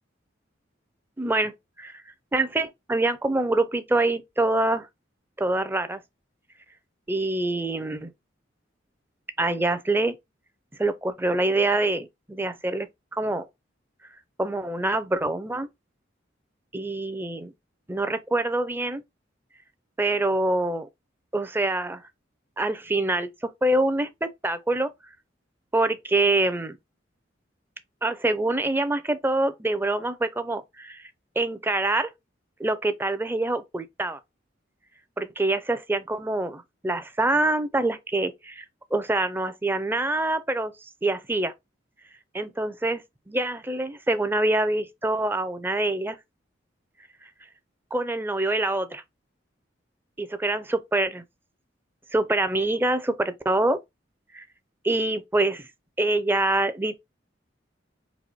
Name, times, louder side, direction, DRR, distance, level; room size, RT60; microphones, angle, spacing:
voice 1, 1.2-2.0 2.3-4.9 5.4-6.0 7.1-8.1 9.4-10.2 10.8-12.9 13.2-13.5 14.4-15.7 16.7-17.5 17.9-19.0 20.0-20.9 21.3-22.0 22.6-24.9 25.7-26.8 28.0-31.0 31.4-32.1 32.6-34.2 35.2-38.6 38.9-40.7 41.0-41.5 42.3-43.0 43.3-46.2 47.9-49.0 50.2-51.2 52.1-53.8 54.3-54.4 54.8-55.7 56.0-57.0, right 2 dB, 10° right, 0.5 m, -25 dB
4.1 x 2.6 x 4.4 m
head